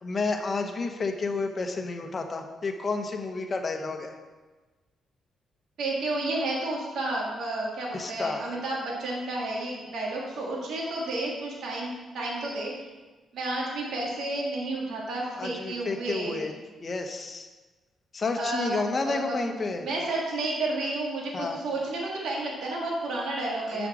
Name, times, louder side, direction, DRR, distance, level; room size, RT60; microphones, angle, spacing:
voice 1, 0.0-4.2 7.9-8.5 15.4-16.5 16.8-17.5 18.1-19.9 21.3-21.6 23.7-23.9, left 3 dB, 40° left, 4 dB, 1.1 m, -31 dB
voice 2, 5.8-12.7 13.3-16.4 18.4-19.5 19.8-23.9, right 2 dB, 75° right, -3 dB, 2.6 m, -31 dB
7.4 x 6.3 x 6.3 m, 1.3 s
cardioid pair, 90°, 0 cm